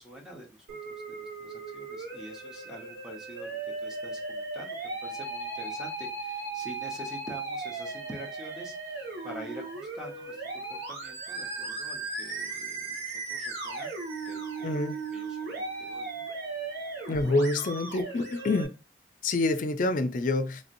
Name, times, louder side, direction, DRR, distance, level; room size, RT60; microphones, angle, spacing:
voice 1, 0.0-13.0 13.3-13.9 14.3-16.2, right 1 dB, 5° right, 0.8 m, -46 dB
Musical instrument, 0.7-18.7, right 3 dB, 85° right, 1.6 m, -37 dB
voice 2, 14.6-15.0 17.1-18.7 19.2-20.6, left 2 dB, 50° left, 0.4 m, -27 dB
3.2 x 2.8 x 2.6 m
head